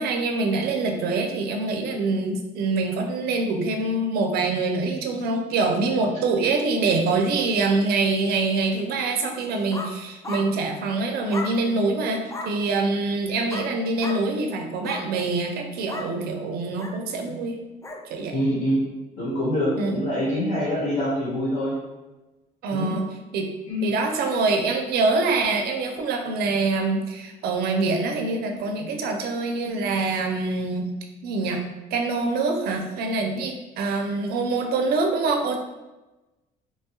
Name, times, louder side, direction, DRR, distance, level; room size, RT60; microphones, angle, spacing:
voice 1, 0.0-17.6 18.1-18.4 19.8-19.9 22.6-23.0 23.3-23.5 23.8-30.9 31.2-31.6 31.9-35.6, right 3 dB, 70° right, 4 dB, 0.5 m, -25 dB
Chihuahua Barking, 9.4-9.9 10.2-10.5 11.3-11.5 12.3-12.5 13.5-13.7 14.0-14.2 14.7-15.1 15.9-16.1 16.8-17.0 17.8-18.0, left 3 dB, 20° left, 0.4 m, -34 dB
voice 2, 18.3-18.8 19.2-21.8 22.7-22.9 23.6-23.9, equal, 50° left, -8 dB, 1.2 m, -25 dB
2.8 x 2.3 x 2.9 m, 1.1 s
cardioid pair, 110°, 17 cm